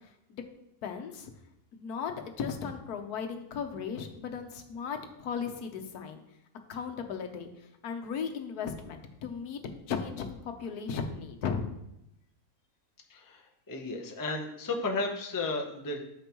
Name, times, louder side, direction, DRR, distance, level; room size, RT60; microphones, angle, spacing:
voice 1, 0.8-1.3 1.7-6.2 6.7-7.5 7.8-9.6 9.9-11.7, left 6 dB, 80° left, 5 dB, 1.3 m, -36 dB
voice 2, 13.1-13.4 13.7-16.0, left 3 dB, 20° left, 1 dB, 0.6 m, -33 dB
8.9 x 6.2 x 3.0 m, 0.81 s
omnidirectional pair, 1.6 m